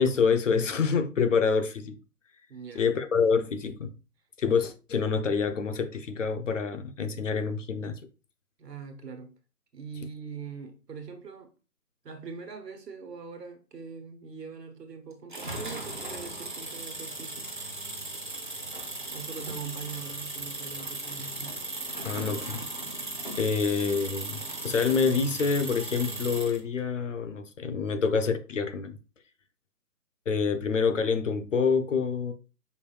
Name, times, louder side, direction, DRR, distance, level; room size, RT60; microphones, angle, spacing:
voice 1, 0.0-2.0 2.8-3.9 4.4-8.0 22.0-22.6 23.4-24.4 24.6-28.9 30.3-32.3, left 5 dB, 50° left, 0.6 m, -26 dB
voice 2, 2.5-2.8 8.6-9.3 9.7-11.5 12.0-17.5 19.1-21.6, right 5 dB, 85° right, 1.2 m, -42 dB
sound 1, 15.3-26.6, right 2 dB, 35° right, 0.5 m, -37 dB
5.2 x 2.3 x 3.3 m
figure-of-eight pair, 160°, 47 cm